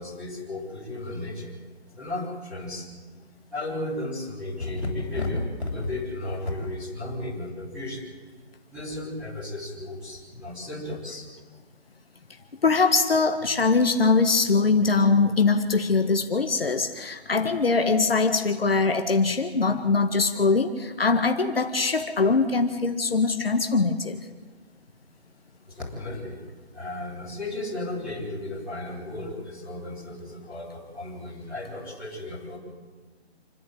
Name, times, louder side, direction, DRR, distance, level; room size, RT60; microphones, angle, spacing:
voice 1, 0.0-1.5 1.9-2.9 3.5-8.0 8.7-11.3 25.7-26.4 26.7-32.6, left 2 dB, 5° right, -11 dB, 3.8 m, -34 dB
voice 2, 12.6-24.2, left 4 dB, 60° left, 5 dB, 1.6 m, -22 dB
28.0 x 11.0 x 9.2 m, 1.4 s
hypercardioid pair, 175°, 33 cm